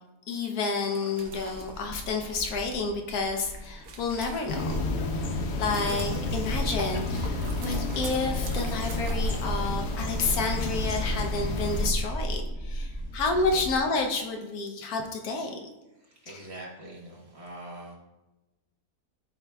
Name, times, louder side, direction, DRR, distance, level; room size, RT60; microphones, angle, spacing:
voice 1, 0.3-4.8 5.5-15.7 16.3-16.4, left 3 dB, 75° left, 3 dB, 1.2 m, -30 dB
sound 1, 0.8-4.9 5.4-10.1, right 5 dB, 85° right, 1.4 m, -45 dB
sound 2, 1.2-13.8, equal, 10° right, 0.7 m, -36 dB
sound 3, 4.5-11.9, left 2 dB, 55° left, 0.8 m, -31 dB
voice 2, 16.0-18.0, right 1 dB, 45° right, -2 dB, 1.3 m, -44 dB
9.7 x 4.7 x 2.2 m, 1.0 s
omnidirectional pair, 1.6 m